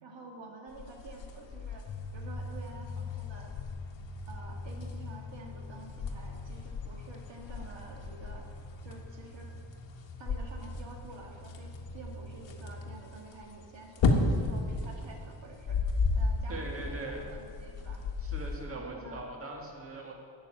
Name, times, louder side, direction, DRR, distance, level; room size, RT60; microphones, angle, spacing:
voice 1, 0.0-3.5 4.3-8.5 8.8-9.5 10.2-18.0 18.7-19.2, right 2 dB, 70° right, 1 dB, 1.7 m, -49 dB
sound 1, 0.7-18.7, left 3 dB, 75° left, 1.5 m, -35 dB
sound 2, 1.9-13.0, left 3 dB, 40° left, 0.8 m, -44 dB
voice 2, 16.5-17.3 18.2-20.1, right 2 dB, 30° right, 0 dB, 1.9 m, -41 dB
12.0 x 6.6 x 9.0 m, 2.2 s
wide cardioid pair, 155°, 46 cm